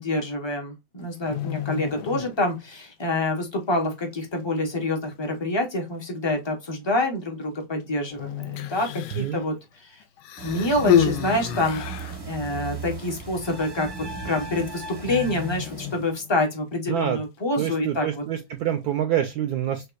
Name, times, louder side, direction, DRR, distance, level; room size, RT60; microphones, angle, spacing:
voice 1, 0.0-9.9 10.4-11.8 12.2-13.9 14.2-18.2, left 2 dB, 35° left, 0.4 m, -27 dB
sound 1, 1.0-2.7 3.0-3.3 3.8-3.9 4.8-4.9 5.2-5.3 6.1-6.3 7.4-7.8 8.1-9.7 10.0-10.2 10.7-11.2 11.6-11.7 11.9-12.0 12.4-12.5 13.5-13.6 13.9-14.2 14.4-14.6 14.9-16.6 16.9-17.0, left 16 dB, 90° left, 1.4 m, -36 dB
Human voice, 8.4-9.3 10.2-12.2 13.1-13.2, left 9 dB, 75° left, 1.1 m, -25 dB
sound 2, 10.4-16.1, right 4 dB, 35° right, 0.4 m, -36 dB
voice 2, 16.9-17.2 17.6-19.9, right 10 dB, 75° right, 0.9 m, -26 dB
6.4 x 2.3 x 2.4 m
omnidirectional pair, 2.1 m